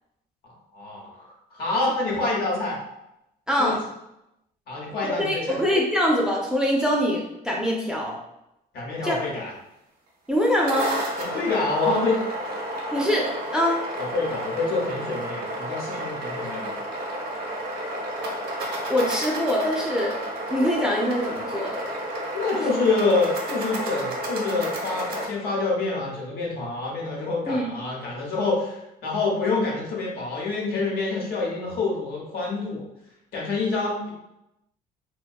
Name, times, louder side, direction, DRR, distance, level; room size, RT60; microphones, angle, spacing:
voice 1, 0.7-2.8 3.6-3.8 4.7-5.6 8.7-9.5 11.2-12.2 14.0-16.7 22.3-32.9 33.3-34.1, left 3 dB, 65° left, -3 dB, 0.9 m, -27 dB
voice 2, 3.5-3.8 5.0-8.2 9.0-9.2 10.3-11.0 12.9-13.8 18.9-20.2 20.5-21.8 27.5-27.7, equal, 5° right, -3 dB, 0.4 m, -24 dB
sound 1, 10.4-25.3, right 1 dB, 65° right, 0.6 m, -31 dB
2.6 x 2.1 x 2.3 m, 0.85 s
cardioid pair, 110°, 17 cm